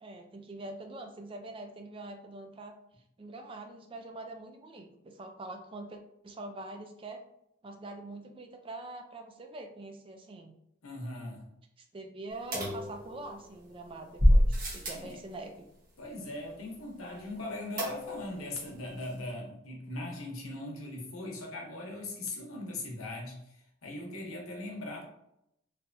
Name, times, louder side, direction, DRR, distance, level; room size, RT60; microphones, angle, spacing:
voice 1, 0.0-2.8 3.2-6.0 6.2-7.2 7.6-10.5 11.8-15.7, right 2 dB, 25° right, 5 dB, 0.3 m, -44 dB
voice 2, 10.8-11.5 14.9-15.2 16.0-25.1, left 2 dB, 90° left, 0 dB, 0.9 m, -40 dB
sound 1, 12.5-13.5 14.2-15.1 17.8-18.4 18.7-18.8 19.0-19.1, equal, 40° right, 1.1 m, -26 dB
3.3 x 2.7 x 2.6 m, 0.79 s
head